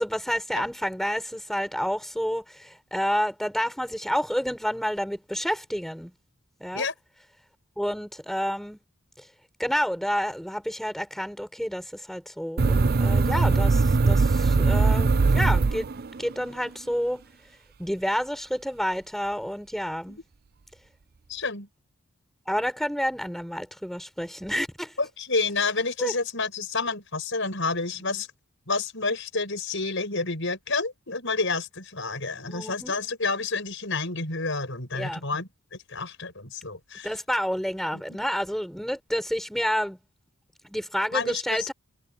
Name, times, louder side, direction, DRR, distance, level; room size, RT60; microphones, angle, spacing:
voice 1, 0.0-6.1 6.6-6.9 7.8-8.8 9.6-17.2 17.8-20.2 22.5-24.9 26.0-26.1 32.5-33.0 34.9-35.2 37.0-40.0 40.6-41.7, equal, ahead, 7.2 m, -29 dB
sound 1, 12.6-16.3, right 4 dB, 45° right, 0.5 m, -21 dB
voice 2, 21.3-21.7 25.0-28.3 28.7-37.1 37.9-38.0 41.1-41.7, left 3 dB, 55° left, 7.4 m, -29 dB
head